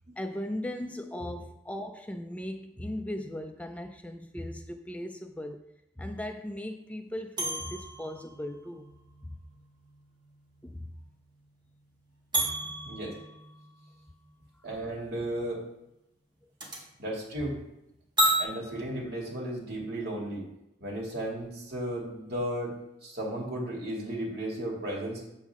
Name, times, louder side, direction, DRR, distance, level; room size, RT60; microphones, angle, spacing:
voice 1, 0.2-5.6 6.0-8.9 9.3-9.4 10.6-10.9 12.4-12.5, left 1 dB, 10° left, 6 dB, 0.4 m, -38 dB
sound 1, 7.4-10.7 11.0-11.1 12.3-14.1 16.6-16.8 18.2-18.4, right 1 dB, 25° right, 1.7 m, -32 dB
voice 2, 12.8-13.2 14.6-15.6 17.0-17.6 18.4-20.4 20.8-22.7 23.0-25.2, right 1 dB, 60° right, -2 dB, 2.5 m, -34 dB
7.3 x 7.2 x 3.7 m, 0.86 s
head